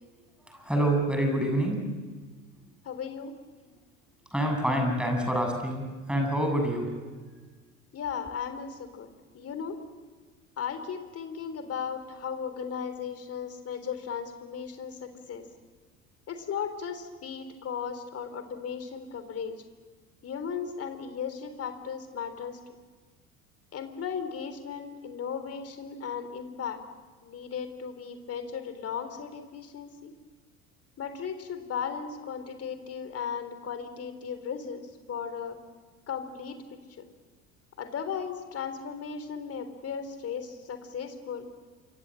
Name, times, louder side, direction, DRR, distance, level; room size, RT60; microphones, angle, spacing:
voice 1, 0.5-2.0 4.3-6.9, right 1 dB, ahead, 3 dB, 7.6 m, -27 dB
voice 2, 2.8-3.3 7.9-9.1 9.3-9.8 10.6-15.4 16.3-19.6 20.2-22.6 23.7-26.8 27.2-30.1 31.0-35.6 36.1-36.6 37.0-37.1 37.8-41.5, left 7 dB, 35° left, 9 dB, 3.7 m, -36 dB
28.5 x 25.5 x 7.7 m, 1.4 s
figure-of-eight pair, 65°, 41 cm